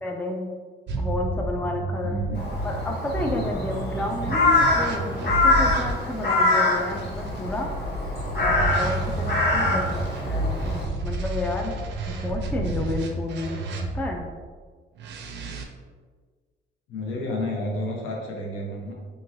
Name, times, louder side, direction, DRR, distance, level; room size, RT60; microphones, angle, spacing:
voice 1, 0.0-0.5 1.0-2.2 2.6-4.5 4.7-7.7 8.4-11.8 12.1-13.6 13.9-14.3, left 2 dB, 10° left, 2 dB, 0.4 m, -31 dB
sound 1, 0.9-5.9 6.9-14.2 15.0-15.6, right 1 dB, 65° right, 0.5 m, -30 dB
voice 2, 2.0-2.4 4.1-4.3 9.6-10.0 16.9-18.9, left 1 dB, 85° left, -1 dB, 0.8 m, -31 dB
Crow, 2.4-10.8, left 2 dB, 55° left, 1.1 m, -24 dB
3.0 x 2.7 x 2.6 m, 1.5 s
cardioid pair, 90°, 20 cm